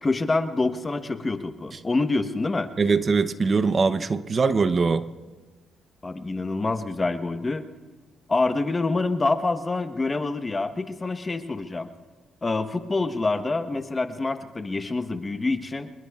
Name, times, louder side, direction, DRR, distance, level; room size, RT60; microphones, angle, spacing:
voice 1, 0.0-2.7 6.0-7.7 8.3-11.9 12.4-15.9, left 3 dB, 25° left, 9 dB, 1.1 m, -26 dB
voice 2, 2.8-5.1, right 4 dB, 40° right, 11 dB, 0.7 m, -22 dB
25.5 x 21.0 x 2.4 m, 1.2 s
cardioid pair, 90°, 0 cm